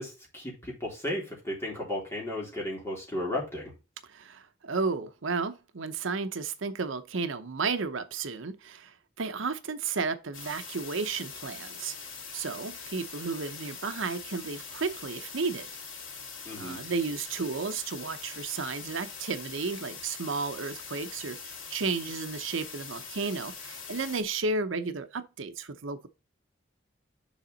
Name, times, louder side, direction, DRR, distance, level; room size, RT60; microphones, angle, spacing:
voice 1, 0.0-3.7 16.5-16.8, left 1 dB, 15° left, 3.6 m, -34 dB
voice 2, 4.0-12.0 12.3-15.7 16.6-26.1, right 4 dB, 80° right, 0.7 m, -33 dB
sound 1, 10.3-24.2, left 5 dB, 90° left, 2.5 m, -43 dB
7.2 x 4.9 x 4.0 m
head